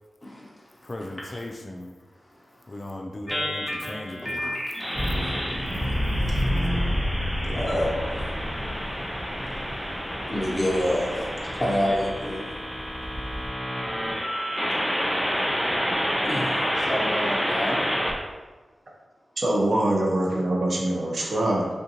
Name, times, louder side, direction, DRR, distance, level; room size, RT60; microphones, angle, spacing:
voice 1, 0.2-0.5 1.3-1.4 4.2-4.8 5.2-6.4 7.4-8.3 9.7-12.4 16.1-17.8, equal, 15° left, -5 dB, 0.9 m, -29 dB
voice 2, 0.8-1.9 2.7-4.5, left 1 dB, 40° left, 3 dB, 0.3 m, -37 dB
sound 1, 3.3-18.1, equal, ahead, 0.6 m, -29 dB
sound 2, 4.9-13.5, equal, 30° right, 1.0 m, -30 dB
voice 3, 19.4-21.7, right 1 dB, 60° right, -2 dB, 0.7 m, -24 dB
3.5 x 2.6 x 2.8 m, 1.3 s
cardioid pair, 65°, 0 cm